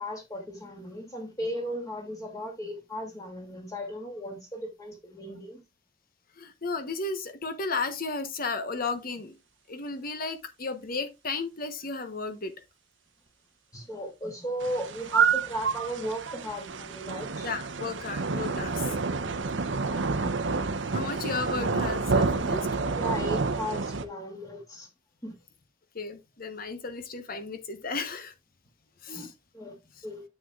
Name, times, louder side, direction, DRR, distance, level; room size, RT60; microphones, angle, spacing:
voice 1, 0.0-5.6 13.7-17.5 19.8-20.4 20.9-21.0 23.0-24.9 25.2-25.3 29.1-29.7 30.0-30.2, equal, 20° left, 2.6 m, -36 dB
voice 2, 6.4-9.4 9.7-12.5 17.4-19.0 20.9-22.8 25.9-28.3 29.0-29.3 30.0-30.1, left 4 dB, 50° left, 1.1 m, -34 dB
sound 1, 14.6-24.1, right 4 dB, 75° right, 0.8 m, -29 dB
9.2 x 7.5 x 2.4 m
head